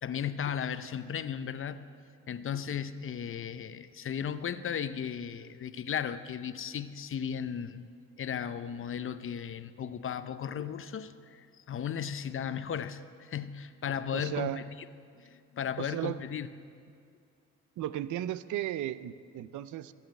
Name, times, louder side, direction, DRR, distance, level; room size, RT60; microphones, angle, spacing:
voice 1, 0.0-1.8 2.3-7.9 8.2-14.6 15.2-16.5, left 8 dB, 45° left, 12 dB, 0.7 m, -35 dB
voice 2, 14.1-14.6 15.8-16.2 17.8-19.9, right 13 dB, 75° right, 15 dB, 0.6 m, -35 dB
14.5 x 7.3 x 9.2 m, 2.3 s
cardioid pair, 90°, 30 cm